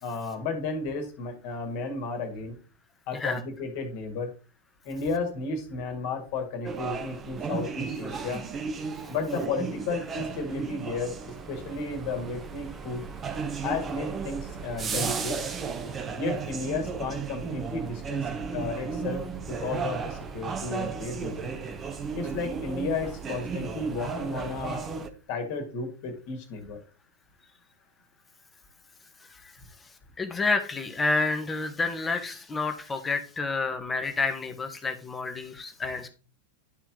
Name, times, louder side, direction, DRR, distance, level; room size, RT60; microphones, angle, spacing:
voice 1, 0.0-2.6 3.1-4.3 4.8-8.4 9.1-13.0 13.6-15.4 16.2-21.5 22.1-24.8 25.3-26.8, left 3 dB, 45° left, 6 dB, 2.2 m, -33 dB
sound 1, 6.6-25.1, right 5 dB, 20° right, 1.1 m, -34 dB
voice 2, 30.2-36.1, left 3 dB, 15° left, 8 dB, 1.4 m, -29 dB
11.0 x 4.4 x 3.8 m, 0.35 s
figure-of-eight pair, 90°, 0 cm